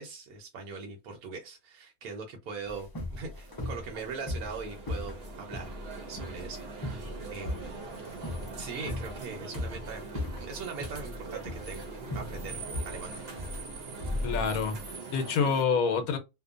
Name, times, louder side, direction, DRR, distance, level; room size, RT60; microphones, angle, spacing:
voice 1, 0.0-7.8 8.6-10.1 10.4-11.8 12.1-13.2, right 4 dB, 80° right, 1.2 m, -41 dB
sound 1, 2.7-14.9, left 1 dB, 35° left, 0.3 m, -37 dB
sound 2, 3.1-15.6, right 4 dB, 50° right, 0.8 m, -43 dB
voice 2, 14.2-16.2, left 5 dB, 75° left, 1.1 m, -27 dB
2.8 x 2.2 x 2.4 m
omnidirectional pair, 1.5 m